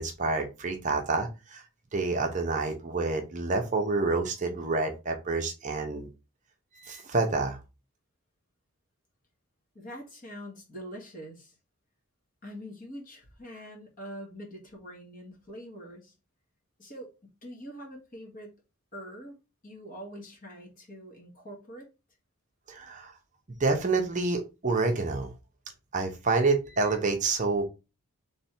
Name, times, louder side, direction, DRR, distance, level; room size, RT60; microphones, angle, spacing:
voice 1, 0.0-1.6 1.9-6.1 6.7-7.6 22.7-23.1 23.6-25.3 25.9-27.6, right 3 dB, 35° right, 0.7 m, -28 dB
voice 2, 9.7-11.5 12.4-16.1 16.8-18.6 18.9-19.3 19.6-21.9, equal, 40° left, 1.5 m, -44 dB
3.4 x 3.3 x 4.3 m
head